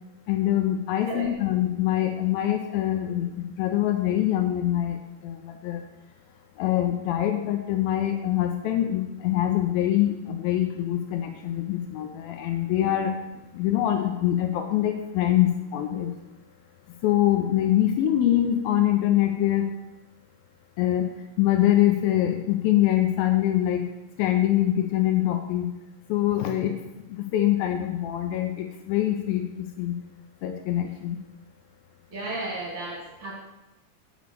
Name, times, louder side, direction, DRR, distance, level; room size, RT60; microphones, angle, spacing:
voice 1, 0.3-5.9 6.6-13.2 13.5-16.1 17.0-19.7 20.8-21.1 21.4-23.9 24.2-25.7 26.1-26.8 27.1-30.0 30.4-31.2, left 12 dB, 90° left, 5 dB, 2.1 m, -24 dB
voice 2, 32.1-33.4, right 2 dB, 55° right, -3 dB, 1.6 m, -33 dB
8.9 x 5.0 x 6.7 m, 1.0 s
omnidirectional pair, 4.9 m